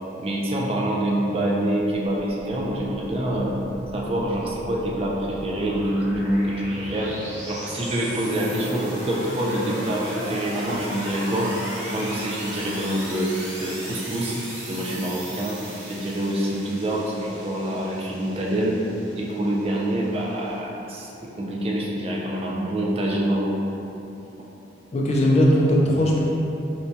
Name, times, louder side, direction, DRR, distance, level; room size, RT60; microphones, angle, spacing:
voice 1, 0.2-3.5 3.9-7.1 7.5-11.5 11.9-14.4 14.7-15.6 15.9-18.8 19.2-23.7, right 1 dB, 35° right, -3 dB, 0.4 m, -26 dB
sound 1, 3.0-20.5, right 1 dB, 90° right, 0.7 m, -37 dB
voice 2, 24.9-26.2, equal, 35° left, -3 dB, 0.3 m, -18 dB
4.3 x 2.2 x 2.6 m, 2.9 s
head